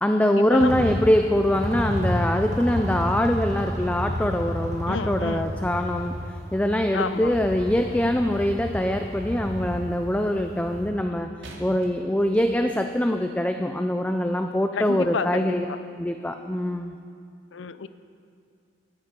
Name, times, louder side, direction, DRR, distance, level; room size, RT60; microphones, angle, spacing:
voice 1, 0.0-11.3 11.6-15.7 16.0-16.9, left 1 dB, 5° left, 6 dB, 0.4 m, -23 dB
sound 1, 0.5-10.8, equal, 35° right, 2.3 m, -31 dB
voice 2, 4.9-5.5 6.9-7.3 14.7-15.8 17.5-17.9, left 5 dB, 80° left, 13 dB, 0.6 m, -30 dB
sound 2, 11.4-13.0 13.8-13.9, right 1 dB, 75° right, 2.4 m, -46 dB
17.5 x 12.5 x 5.3 m, 2.3 s
head